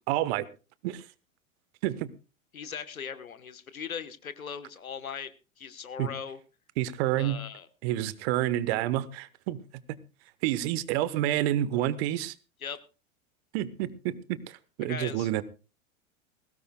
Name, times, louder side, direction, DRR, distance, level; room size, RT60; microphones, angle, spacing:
voice 1, 0.1-0.5 0.8-1.0 1.8-2.1 6.0-6.1 6.8-7.4 7.8-9.6 10.4-12.3 13.5-15.4, right 13 dB, 50° right, 17 dB, 1.2 m, -28 dB
voice 2, 2.5-5.3 5.6-6.4 7.2-7.7 12.6-12.8 14.9-15.3, left 7 dB, 80° left, 12 dB, 1.3 m, -39 dB
20.5 x 17.0 x 2.3 m, 0.32 s
figure-of-eight pair, 90°, 41 cm